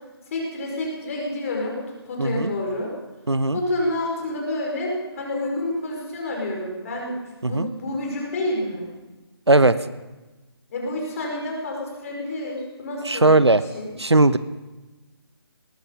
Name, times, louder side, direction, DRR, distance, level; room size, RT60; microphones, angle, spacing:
voice 1, 0.3-1.8 2.0-2.9 3.5-7.2 7.4-8.9 10.7-13.4 13.7-13.9, left 1 dB, 35° left, -1 dB, 5.0 m, -28 dB
voice 2, 2.2-2.5 3.3-3.6 7.4-7.7 9.5-9.8 13.0-13.6 14.0-14.4, right 2 dB, 90° right, 15 dB, 0.9 m, -17 dB
19.5 x 13.5 x 5.4 m, 1.1 s
figure-of-eight pair, 150°, 14 cm